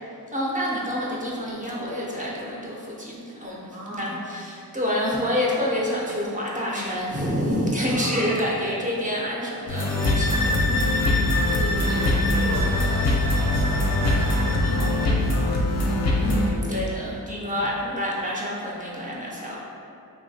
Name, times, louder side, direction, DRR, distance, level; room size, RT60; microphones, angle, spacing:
voice 1, 0.3-10.9 16.2-19.6, equal, 20° right, -5 dB, 0.4 m, -28 dB
voice 2, 3.7-4.2 7.9-8.3 11.1-15.2 17.5-17.6, right 1 dB, 85° right, -7 dB, 0.9 m, -36 dB
sound 1, 9.7-16.5, left 1 dB, 40° left, 0.4 m, -23 dB
sound 2, 9.8-15.2, left 2 dB, 60° right, 0.6 m, -29 dB
3.0 x 2.2 x 2.6 m, 2.6 s
wide cardioid pair, 105°, 40 cm